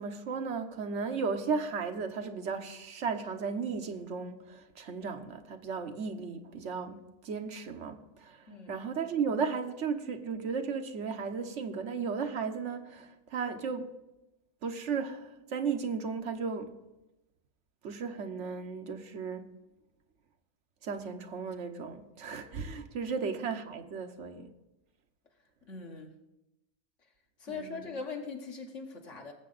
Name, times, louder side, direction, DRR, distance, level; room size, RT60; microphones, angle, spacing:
voice 1, 0.0-13.9 14.6-16.8 17.8-19.5 20.8-24.5 27.5-27.9, right 5 dB, 75° right, 1.2 m, -35 dB
voice 2, 25.7-26.1 27.4-29.3, left 4 dB, 85° left, 1.8 m, -41 dB
19.0 x 7.5 x 4.0 m
omnidirectional pair, 1.2 m